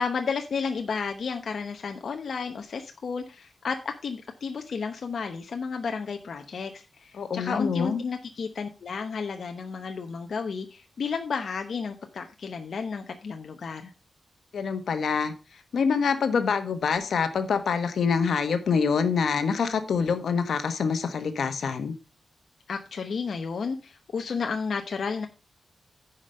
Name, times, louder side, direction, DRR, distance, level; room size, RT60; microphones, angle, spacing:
voice 1, 0.0-13.9 22.7-25.3, left 5 dB, 60° left, 5 dB, 0.8 m, -32 dB
voice 2, 7.2-8.0 14.5-15.3 15.7-21.9, left 6 dB, 80° left, 9 dB, 1.2 m, -25 dB
9.8 x 5.2 x 5.2 m, 0.31 s
wide cardioid pair, 155°, 0 cm